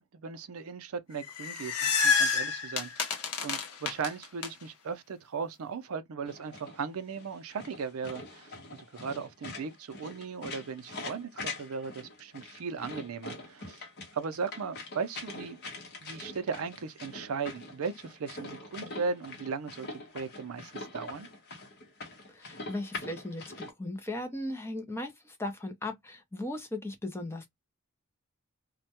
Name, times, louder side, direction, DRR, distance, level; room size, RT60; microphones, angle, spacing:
voice 1, 0.0-13.8 14.1-15.6 16.0-19.9 20.1-21.3, right 5 dB, 70° right, 0.4 m, -37 dB
sound 1, 1.2-4.5, left 5 dB, 85° left, 0.7 m, -28 dB
sound 2, 6.3-23.7, left 2 dB, 50° left, 0.8 m, -44 dB
voice 2, 22.3-27.5, left 1 dB, 10° left, 0.5 m, -37 dB
2.2 x 2.1 x 2.7 m
head